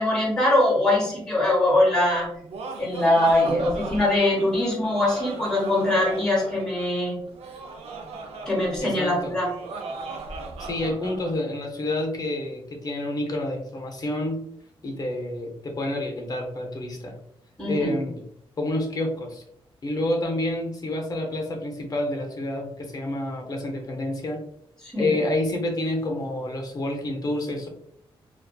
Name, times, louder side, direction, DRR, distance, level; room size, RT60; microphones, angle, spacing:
voice 1, 0.0-2.3 2.8-7.2 8.5-9.5 17.6-17.9 24.8-25.1, left 1 dB, 5° left, -4 dB, 1.0 m, -22 dB
Laughter, 2.2-11.4, right 3 dB, 90° right, 0.4 m, -37 dB
voice 2, 8.8-9.4 10.6-14.4 14.8-17.2 17.7-18.2 18.6-19.4 19.8-24.4 25.0-27.7, left 1 dB, 40° left, 1 dB, 0.6 m, -28 dB
2.4 x 2.3 x 2.2 m, 0.73 s
cardioid pair, 100°, 10 cm